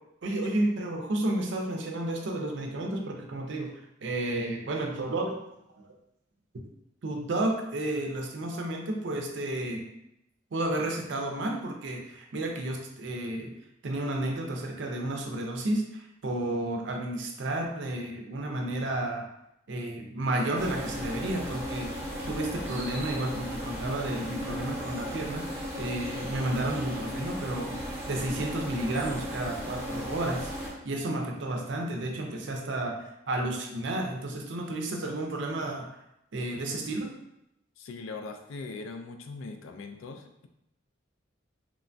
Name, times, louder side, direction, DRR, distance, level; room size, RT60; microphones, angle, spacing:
voice 1, 0.2-3.7 4.0-5.4 7.0-9.9 10.5-13.5 13.8-19.2 19.7-21.9 22.3-25.5 25.8-35.9 36.3-37.2, right 1 dB, 60° right, 2 dB, 0.4 m, -32 dB
sound 1, 20.5-30.7, equal, 10° right, 0.7 m, -36 dB
voice 2, 37.8-40.5, left 3 dB, 75° left, 6 dB, 0.3 m, -41 dB
3.0 x 2.2 x 2.5 m, 0.84 s
head